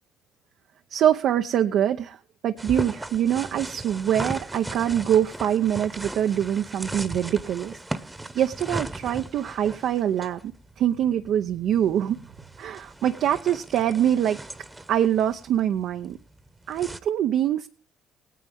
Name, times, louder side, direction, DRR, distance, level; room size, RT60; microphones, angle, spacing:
voice 1, 0.9-2.2 2.4-7.8 8.3-10.5 10.8-12.2 12.6-14.4 14.9-16.2 16.7-17.7, right 10 dB, 70° right, 6 dB, 0.8 m, -24 dB
sound 1, 2.6-17.0, right 2 dB, 15° right, 1.2 m, -37 dB
18.0 x 9.4 x 3.6 m, 0.35 s
supercardioid pair, 65°, 0 cm